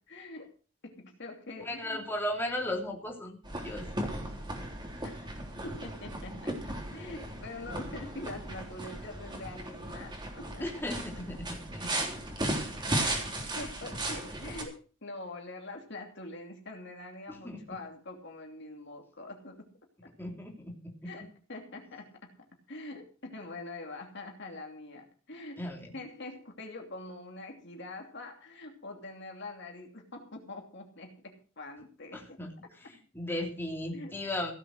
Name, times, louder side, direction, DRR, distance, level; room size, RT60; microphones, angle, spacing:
voice 1, 0.1-0.5 0.8-2.0 5.0-5.4 5.6-10.8 12.9-13.3 13.6-19.7 20.0-20.1 21.0-22.4 22.7-25.7 25.9-32.4 33.9-34.2, left 2 dB, 55° left, 2 dB, 2.8 m, -44 dB
voice 2, 1.6-3.4 3.6-3.8 10.6-11.9 17.3-17.6 20.2-20.9 25.6-25.9 32.1-32.5 32.9-34.5, left 1 dB, 10° left, 0 dB, 3.1 m, -36 dB
sound 1, 3.4-14.6, right 1 dB, 20° right, 3.5 m, -36 dB
16.5 x 7.9 x 6.4 m, 0.39 s
head